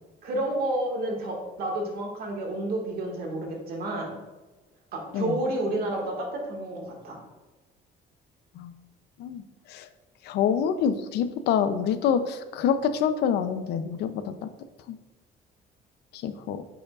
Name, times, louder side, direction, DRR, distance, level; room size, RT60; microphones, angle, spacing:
voice 1, 0.2-4.2 4.9-7.2, right 1 dB, 65° right, -2 dB, 1.8 m, -30 dB
voice 2, 10.2-14.5 14.9-15.0 16.1-16.6, left 7 dB, 75° left, 11 dB, 0.6 m, -26 dB
8.6 x 4.9 x 2.4 m, 1.2 s
cardioid pair, 110°, 17 cm